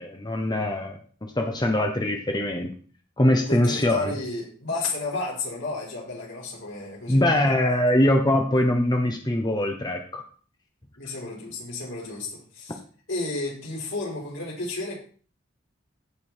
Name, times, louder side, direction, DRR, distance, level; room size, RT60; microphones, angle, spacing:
voice 1, 0.0-2.7 3.2-4.1 7.1-10.2, left 1 dB, 20° left, 3 dB, 1.0 m, -23 dB
voice 2, 3.5-7.4 11.0-12.8 13.1-15.0, left 2 dB, 75° left, -3 dB, 5.1 m, -32 dB
15.5 x 5.5 x 4.4 m, 0.42 s
head